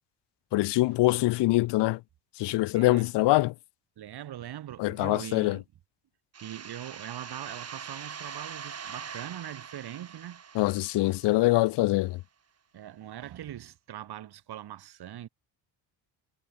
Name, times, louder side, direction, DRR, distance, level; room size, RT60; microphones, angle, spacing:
voice 1, 0.5-2.0 2.4-3.5 4.8-5.6 10.6-12.2, left 19 dB, 75° left, 0.7 m, -24 dB
voice 2, 2.7-3.1 4.0-5.6 6.4-10.4 12.7-15.3, right 12 dB, 65° right, 3.8 m, -41 dB
sound 1, 6.3-11.8, right 7 dB, 35° right, 2.7 m, -43 dB
cardioid pair, 120°, 42 cm